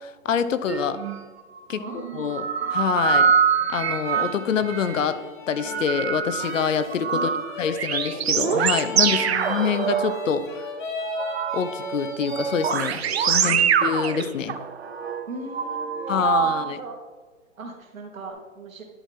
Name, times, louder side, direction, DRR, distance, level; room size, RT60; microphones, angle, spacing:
voice 1, 0.0-1.0 1.7-3.3 3.7-5.2 5.5-7.3 7.6-10.4 11.5-14.6 16.1-16.8, left 7 dB, 70° left, 12 dB, 0.8 m, -26 dB
sound 1, 0.7-1.2 1.6-5.1 5.6-10.7 11.0-16.7 18.2-18.3, right 7 dB, 50° right, 0.7 m, -25 dB
voice 2, 1.7-2.3 3.0-3.4 7.1-7.9 9.1-10.0 13.4-13.7 15.3-17.0 17.6-18.8, right 2 dB, 80° right, 2 dB, 2.3 m, -40 dB
sound 2, 4.0-12.9, left 4 dB, 40° left, 1.1 m, -37 dB
11.0 x 5.9 x 3.6 m, 1.4 s
hypercardioid pair, 165°, 40 cm